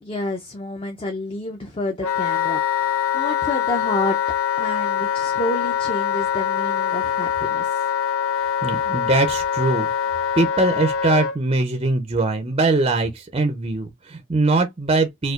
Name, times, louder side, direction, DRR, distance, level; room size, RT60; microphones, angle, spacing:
voice 1, 0.0-4.2 4.5-7.8, left 2 dB, 25° left, 0.5 m, -29 dB
Wind instrument woodwind instrument, 2.0-11.4, left 9 dB, 85° left, 0.6 m, -23 dB
voice 2, 8.6-9.9 10.4-15.3, right 3 dB, 25° right, 0.5 m, -21 dB
4.2 x 2.2 x 2.4 m
head